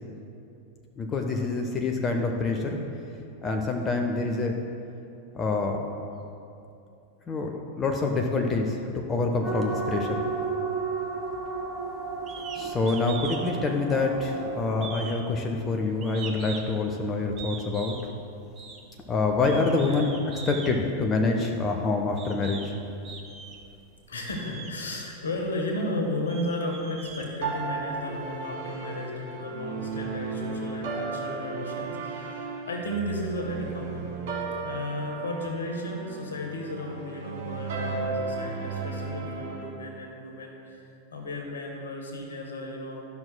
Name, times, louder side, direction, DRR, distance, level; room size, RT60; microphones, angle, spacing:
voice 1, 1.0-2.8 3.4-4.6 5.3-5.9 7.3-7.5 7.8-8.8 9.1-10.2 12.5-18.0 19.1-20.1 20.5-22.7, left 3 dB, 20° left, 2 dB, 0.6 m, -26 dB
sound 1, 9.4-14.7, right 4 dB, 5° right, 1.1 m, -33 dB
sound 2, 12.3-12.6 12.9-13.4 13.8-14.4 14.8-16.8 17.4-18.1 18.6-18.8 19.4-20.7 21.6-21.7 22.2-22.7 23.0-23.7 24.3-24.7 25.4-25.5 26.0-27.8, right 5 dB, 30° right, 0.9 m, -41 dB
voice 2, 24.1-34.1 34.6-40.8 41.1-43.0, left 1 dB, 65° left, 1 dB, 1.2 m, -34 dB
sound 3, 27.4-39.6, right 4 dB, 55° right, 1.5 m, -34 dB
12.0 x 6.0 x 2.2 m, 2.6 s
figure-of-eight pair, 90°, 0 cm